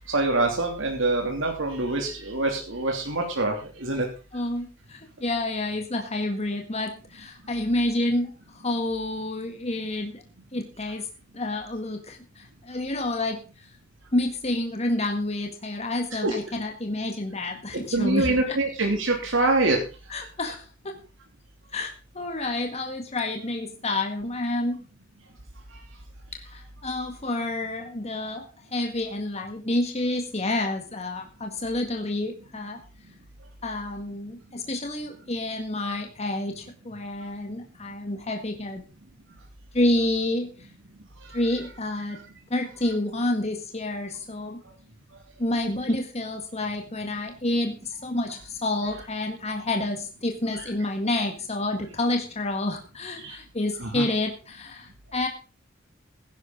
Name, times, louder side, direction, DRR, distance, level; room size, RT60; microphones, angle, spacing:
voice 1, 0.1-3.5 3.8-4.0 16.2-16.4 17.9-19.8 22.4-22.5 50.6-50.7 53.2-53.4 53.8-54.0, right 2 dB, 80° right, 2 dB, 2.8 m, -25 dB
voice 2, 4.3-10.2 10.5-11.1 11.3-13.7 14.1-18.6 20.1-21.0 21.7-24.8 26.3-32.8 33.6-38.8 39.7-40.7 41.3-42.2 42.5-44.6 45.4-55.3, left 2 dB, 35° left, 3 dB, 1.8 m, -29 dB
16.0 x 11.5 x 3.9 m, 0.34 s
head